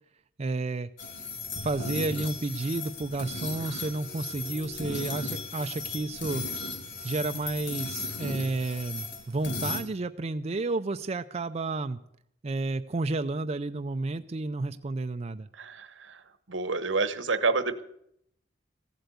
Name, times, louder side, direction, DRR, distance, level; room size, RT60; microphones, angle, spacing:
voice 1, 0.4-0.9 1.6-6.4 7.0-12.0 12.4-15.5, right 2 dB, 35° right, 8 dB, 0.5 m, -31 dB
sound 1, 1.0-9.8, left 3 dB, 65° left, 2.1 m, -36 dB
voice 2, 15.5-17.8, right 4 dB, 85° right, 12 dB, 1.1 m, -29 dB
15.5 x 7.9 x 8.2 m, 0.73 s
head